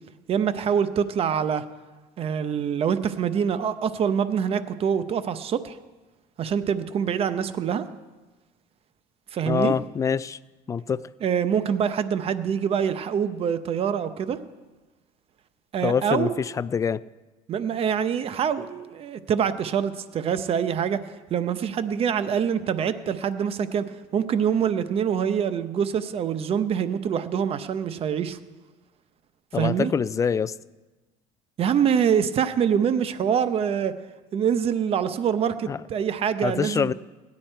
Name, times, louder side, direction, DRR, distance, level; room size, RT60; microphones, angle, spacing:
voice 1, 0.3-1.6 2.2-5.8 6.4-7.8 9.3-9.7 11.2-14.4 15.7-16.3 17.5-21.0 21.3-23.9 24.1-28.4 29.5-29.9 31.6-33.9 34.3-36.9, right 8 dB, 40° right, 12 dB, 0.7 m, -25 dB
voice 2, 9.5-10.4 10.7-11.1 15.8-17.0 29.5-30.5 35.7-35.8 36.4-36.9, left 6 dB, 20° left, 16 dB, 0.3 m, -25 dB
16.5 x 10.5 x 4.5 m, 1.2 s
cardioid pair, 110°, 15 cm